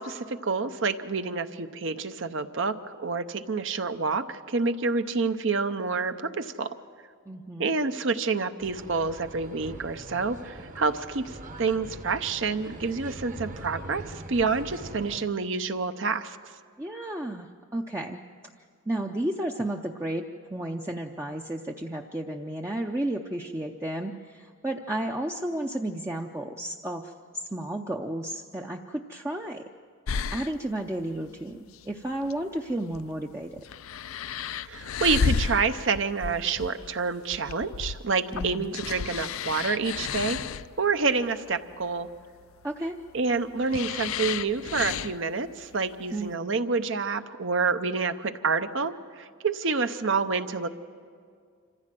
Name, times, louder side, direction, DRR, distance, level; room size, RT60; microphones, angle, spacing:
voice 1, 0.0-6.7 7.6-16.4 34.7-40.4 40.8-42.1 43.1-50.7, right 4 dB, 65° right, 9 dB, 0.8 m, -28 dB
voice 2, 7.3-7.7 16.8-18.2 18.9-20.3 20.5-29.6 30.3-33.5 38.3-38.7 42.6-43.0 46.1-46.5, right 1 dB, 15° right, 1 dB, 0.5 m, -32 dB
sound 1, 8.6-15.2, right 1 dB, 35° right, 1.0 m, -42 dB
sound 2, 30.1-46.3, left 6 dB, 80° left, 0.5 m, -33 dB
26.5 x 15.0 x 7.6 m, 2.1 s
head